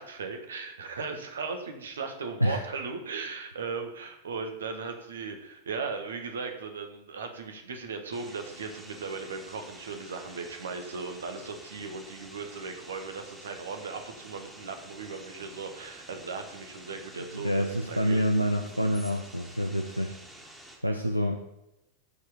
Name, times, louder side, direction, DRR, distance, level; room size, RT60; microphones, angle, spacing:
voice 1, 0.0-18.2, right 4 dB, 65° right, 6 dB, 1.5 m, -37 dB
sound 1, 8.1-20.8, right 1 dB, 5° right, 2.0 m, -49 dB
voice 2, 17.2-20.5 20.8-21.4, equal, 90° right, 4 dB, 0.6 m, -28 dB
14.0 x 4.8 x 5.0 m, 0.89 s
figure-of-eight pair, 90°, 0 cm